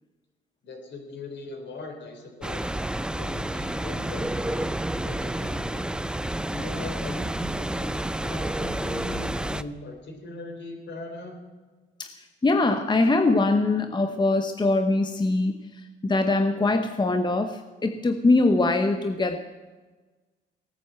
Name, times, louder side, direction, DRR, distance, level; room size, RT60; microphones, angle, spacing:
voice 1, 0.6-2.8 3.2-5.9 6.5-7.9 8.2-11.4, left 2 dB, 65° left, 3 dB, 4.1 m, -40 dB
sound 1, 2.4-9.6, right 1 dB, 5° right, 0.5 m, -30 dB
voice 2, 12.0-19.4, left 2 dB, 20° left, 6 dB, 1.0 m, -23 dB
17.5 x 9.5 x 7.7 m, 1.3 s
cardioid pair, 90°, 20 cm